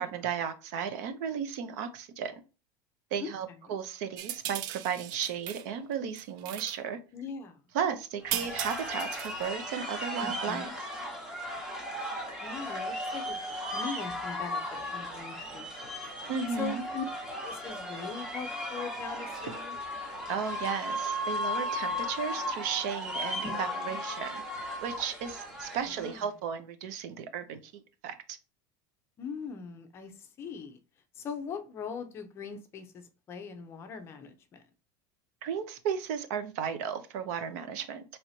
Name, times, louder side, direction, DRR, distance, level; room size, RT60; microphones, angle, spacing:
voice 1, 0.0-2.4 3.1-7.0 7.7-10.9 16.3-16.8 20.3-24.4 24.8-28.4 35.4-38.0, right 7 dB, 65° right, 0.7 m, -34 dB
sound 1, 4.2-5.7 5.9-6.8 8.3-9.4, right 12 dB, 45° right, 0.4 m, -37 dB
voice 2, 7.1-7.6 10.2-10.7 12.0-12.1 12.4-13.4 13.7-16.0 16.6-17.0 17.4-19.8 23.4-23.5 25.9-26.2 29.2-30.8 31.2-34.6, left 5 dB, 25° left, 0.6 m, -41 dB
sound 2, 8.2-26.2, left 1 dB, 5° right, 1.1 m, -36 dB
4.6 x 3.2 x 2.7 m
cardioid pair, 170°, 10 cm